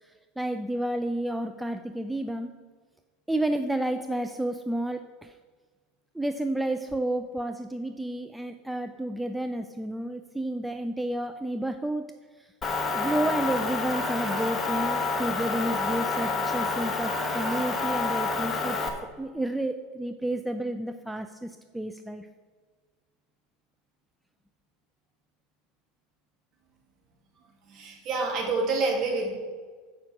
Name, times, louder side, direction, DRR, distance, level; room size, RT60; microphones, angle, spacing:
voice 1, 0.0-2.5 3.3-5.4 6.1-12.1 12.4-12.5 12.9-18.8 19.2-22.3, right 1 dB, 5° right, 7 dB, 0.4 m, -31 dB
Motor vehicle (road) / Engine, 12.6-18.9, left 3 dB, 25° left, 1.2 m, -28 dB
voice 2, 27.7-29.3, right 3 dB, 45° right, -1 dB, 2.4 m, -27 dB
7.5 x 5.1 x 5.9 m, 1.5 s
hypercardioid pair, 80°, 0 cm